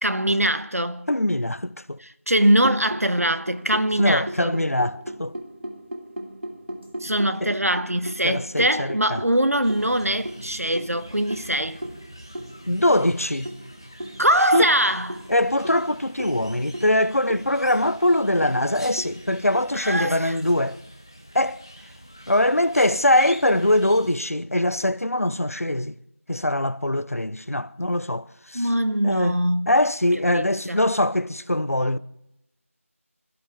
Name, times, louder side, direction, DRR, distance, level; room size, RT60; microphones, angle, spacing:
voice 1, 0.0-1.1 2.0-4.6 7.0-11.8 14.2-15.2 19.8-20.4 28.5-29.7 30.3-30.8, right 1 dB, 80° right, 1.2 m, -22 dB
voice 2, 1.1-2.0 4.0-5.3 7.4-7.5 8.2-9.2 12.7-13.5 14.5-14.6 15.3-20.8 21.3-21.6 22.3-26.0 26.3-28.7 29.0-29.4 29.7-32.0, left 1 dB, 80° left, 0.9 m, -22 dB
sound 1, 2.6-19.6, right 1 dB, 55° right, 2.4 m, -37 dB
sound 2, 9.6-24.2, equal, 20° left, 0.8 m, -45 dB
27.5 x 13.0 x 3.6 m
figure-of-eight pair, 175°, 8 cm